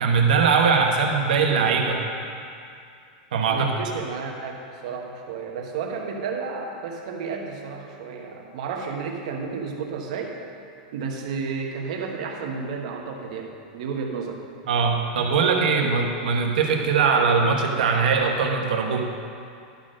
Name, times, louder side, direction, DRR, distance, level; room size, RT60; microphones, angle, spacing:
voice 1, 0.0-2.1 3.3-3.7 14.7-19.0, right 5 dB, 85° right, 2 dB, 1.2 m, -21 dB
voice 2, 3.5-10.4 10.9-14.4, right 5 dB, 55° right, 1 dB, 1.1 m, -32 dB
11.5 x 4.4 x 6.3 m, 2.4 s
supercardioid pair, 180°, 4 cm